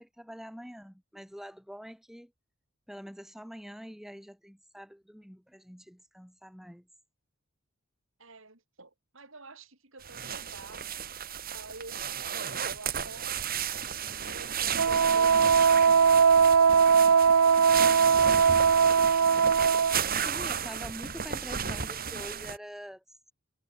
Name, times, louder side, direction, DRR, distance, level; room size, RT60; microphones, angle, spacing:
voice 1, 0.0-2.3 2.9-6.9 19.8-23.3, equal, ahead, 6.0 m, -45 dB
voice 2, 8.2-12.1 12.4-13.7 14.1-16.2 16.6-18.6 20.3-20.9, right 3 dB, 65° right, 4.6 m, -49 dB
sound 1, 10.0-22.6, right 7 dB, 45° right, 3.0 m, -34 dB
Wind instrument woodwind instrument, 14.8-20.0, right 6 dB, 85° right, 0.7 m, -20 dB
head